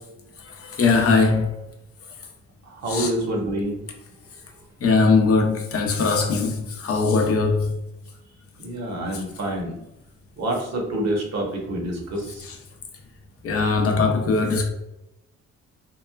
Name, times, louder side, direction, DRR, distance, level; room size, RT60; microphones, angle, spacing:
voice 1, 0.6-1.5 2.9-3.1 4.8-7.7 12.4-12.6 13.4-14.6, left 4 dB, 50° left, 0.6 m, -20 dB
voice 2, 2.7-3.8 8.6-9.8 10.4-12.4, right 1 dB, 60° right, 0.9 m, -27 dB
3.0 x 2.1 x 2.3 m
cardioid pair, 90°, 30 cm